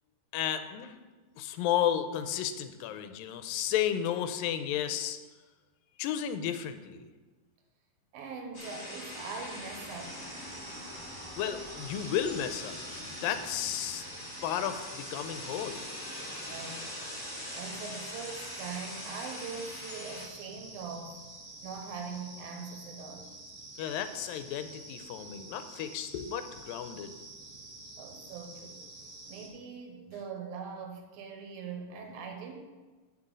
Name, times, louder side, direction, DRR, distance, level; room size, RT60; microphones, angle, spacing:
voice 1, 0.3-1.0 1.4-5.2 6.0-7.1 11.4-14.0 14.4-15.9 23.8-27.1, left 10 dB, 90° left, 9 dB, 2.4 m, -33 dB
voice 2, 8.1-10.3 16.5-16.9 17.5-21.2 21.6-23.3 28.0-28.8 29.3-32.5, right 5 dB, 85° right, 4 dB, 3.0 m, -42 dB
sound 1, 8.5-20.3, left 1 dB, 15° left, 0.8 m, -42 dB
sound 2, 10.0-29.5, right 2 dB, 35° right, 1.6 m, -49 dB
7.7 x 6.0 x 7.5 m, 1.3 s
omnidirectional pair, 4.1 m